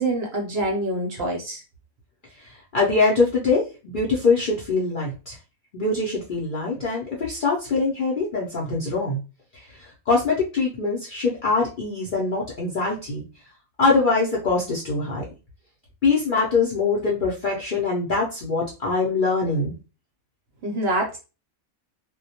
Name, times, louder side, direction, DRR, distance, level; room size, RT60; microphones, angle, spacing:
voice 1, 0.0-1.6 20.6-21.2, right 2 dB, 60° right, 0 dB, 0.7 m, -25 dB
voice 2, 2.4-5.4 5.7-9.2 9.5-13.2 13.8-15.2 16.0-19.7, left 3 dB, 55° left, -4 dB, 0.5 m, -23 dB
2.2 x 2.1 x 2.7 m, 0.31 s
omnidirectional pair, 1.5 m